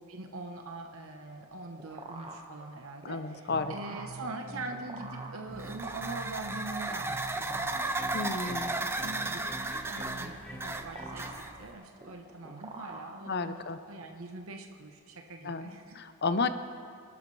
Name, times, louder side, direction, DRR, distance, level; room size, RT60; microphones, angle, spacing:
voice 1, 0.1-8.4 8.9-16.0, right 2 dB, 75° right, 4 dB, 1.0 m, -43 dB
sound 1, 1.3-13.7, right 2 dB, 25° right, 1.4 m, -47 dB
voice 2, 3.0-3.7 8.1-8.7 13.3-13.8 15.4-16.5, left 4 dB, 50° left, 10 dB, 0.7 m, -32 dB
sound 2, 3.5-11.5, right 1 dB, 5° left, 4.1 m, -45 dB
sound 3, 5.5-11.7, right 2 dB, 10° right, 0.6 m, -35 dB
25.5 x 12.0 x 3.3 m, 2.6 s
head